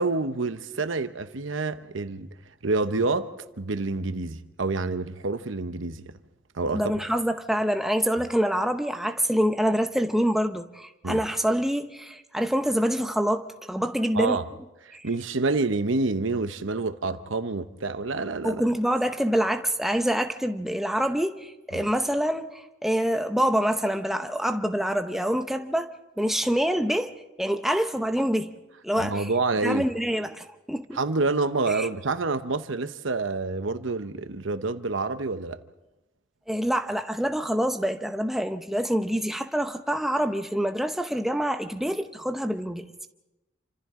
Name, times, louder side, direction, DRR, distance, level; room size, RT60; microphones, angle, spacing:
voice 1, 0.0-2.3 2.6-6.1 6.5-6.9 11.0-11.2 14.1-14.4 14.8-18.6 21.7-21.9 29.0-29.8 30.9-35.6, right 3 dB, 75° right, 0.9 m, -28 dB
voice 2, 6.7-14.4 14.9-15.1 18.4-27.1 27.4-28.5 28.8-29.3 29.6-31.0 31.7-31.9 36.5-42.9, equal, ahead, 0.7 m, -26 dB
28.0 x 26.0 x 3.8 m
head